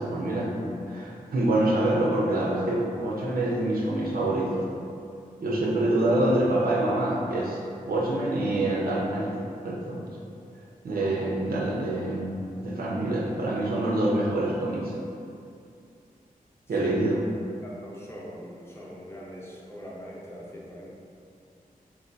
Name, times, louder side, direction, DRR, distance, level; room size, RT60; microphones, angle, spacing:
voice 1, 0.0-4.6 5.4-7.6 7.9-9.4 9.6-10.1 10.8-14.9 16.7-17.2, right 1 dB, 85° right, -4 dB, 0.5 m, -26 dB
voice 2, 17.6-20.9, equal, 15° left, -5 dB, 0.5 m, -42 dB
3.3 x 2.2 x 2.6 m, 2.5 s
wide cardioid pair, 105°, 15 cm